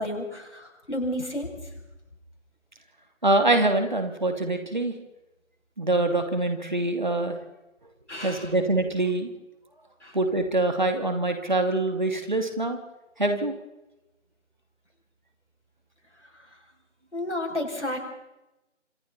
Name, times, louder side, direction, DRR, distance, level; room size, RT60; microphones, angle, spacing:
voice 1, 0.0-1.5 8.1-8.5 10.0-10.2 17.1-18.0, left 1 dB, 65° left, 2 dB, 7.7 m, -31 dB
voice 2, 3.2-4.9 5.8-7.4 8.2-9.3 10.1-12.8 13.2-13.5, right 2 dB, 35° right, 6 dB, 2.7 m, -24 dB
26.5 x 26.5 x 4.3 m, 0.97 s
figure-of-eight pair, 170°, 38 cm